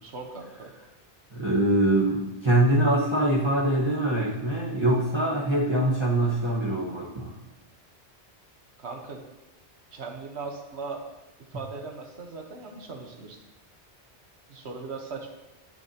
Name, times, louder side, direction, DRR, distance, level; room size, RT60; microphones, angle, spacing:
voice 1, 0.0-0.7 8.8-9.2 9.9-11.0 11.5-13.4 14.5-15.3, right 4 dB, 80° right, 2 dB, 1.5 m, -38 dB
voice 2, 1.3-7.3, right 1 dB, 25° right, -6 dB, 1.5 m, -23 dB
18.5 x 6.8 x 3.0 m, 1.0 s
omnidirectional pair, 1.1 m